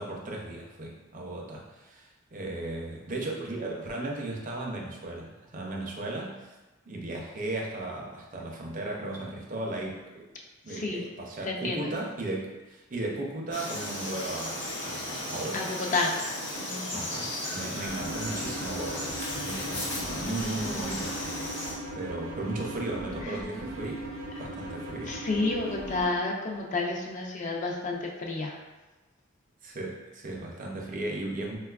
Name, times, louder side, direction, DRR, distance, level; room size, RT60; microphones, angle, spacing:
voice 1, 0.0-6.5 6.9-10.3 10.6-15.8 16.9-24.0 24.4-25.1 29.6-31.6, right 2 dB, 40° right, -1 dB, 0.5 m, -36 dB
voice 2, 10.7-11.0 11.4-11.9 15.5-16.2 16.5-17.0 25.1-28.6, left 3 dB, 35° left, 0 dB, 0.3 m, -30 dB
Frog, 13.5-21.7, left 1 dB, 60° left, 0.8 m, -35 dB
sound 1, 17.9-26.0, right 1 dB, 85° right, 0.6 m, -39 dB
3.9 x 2.3 x 2.3 m, 1.1 s
head